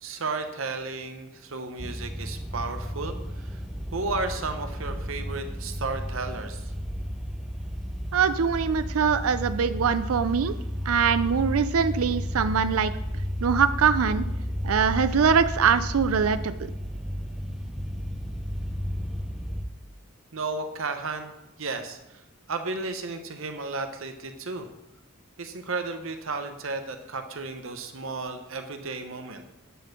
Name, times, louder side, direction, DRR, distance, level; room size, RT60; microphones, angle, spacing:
voice 1, 0.0-3.6 3.9-6.7 20.3-21.3 21.6-22.2 22.5-24.7 25.4-29.5, right 3 dB, 65° right, 7 dB, 0.9 m, -33 dB
sound 1, 1.8-19.6, equal, ahead, 0.6 m, -33 dB
voice 2, 8.1-10.5 10.9-12.9 13.4-14.3 14.6-16.6, right 6 dB, 85° right, 12 dB, 0.5 m, -23 dB
9.1 x 4.3 x 6.5 m, 0.94 s
head